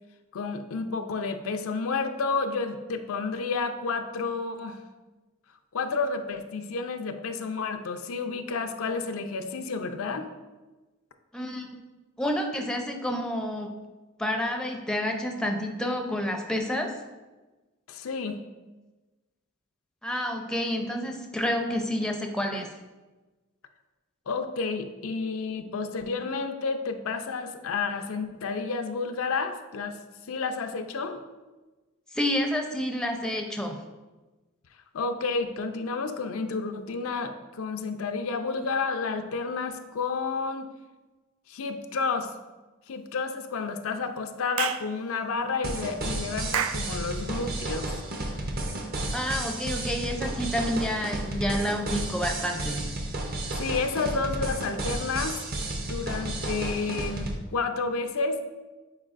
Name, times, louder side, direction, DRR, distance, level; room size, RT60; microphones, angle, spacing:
voice 1, 0.3-4.8 5.7-10.3 17.9-18.4 24.3-30.0 30.3-31.2 34.9-40.7 41.5-42.3 42.9-48.0 53.6-55.4 55.8-58.4, left 4 dB, 80° left, 7 dB, 0.5 m, -30 dB
voice 2, 11.3-11.8 12.2-13.7 14.2-16.9 20.0-22.7 32.1-33.8 49.1-52.8, left 1 dB, 5° left, 2 dB, 0.5 m, -29 dB
Clapping / Chirp tweet, 44.6-44.9 46.5-46.9, right 8 dB, 75° right, 0.3 m, -28 dB
sound 1, 45.6-57.4, right 1 dB, 45° right, 0.7 m, -32 dB
8.7 x 4.6 x 2.5 m, 1.2 s
head